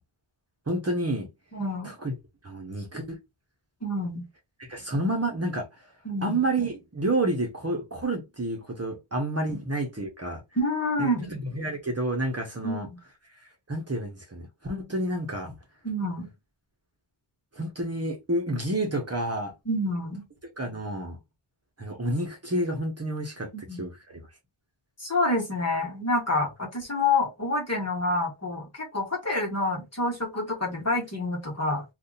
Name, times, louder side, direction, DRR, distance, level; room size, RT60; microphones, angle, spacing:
voice 1, 0.7-1.3 1.8-2.1 2.4-3.2 4.6-5.7 6.2-10.4 11.0-12.9 13.7-15.5 17.5-19.5 20.6-21.2 21.8-23.9, right 1 dB, 30° right, 1.0 m, -29 dB
voice 2, 1.5-1.9 3.8-4.2 6.0-6.4 10.6-11.4 12.6-13.0 15.8-16.3 19.6-20.2 23.7-23.8 25.0-31.8, left 2 dB, 30° left, 1.4 m, -28 dB
2.7 x 2.5 x 3.9 m
wide cardioid pair, 90°, 47 cm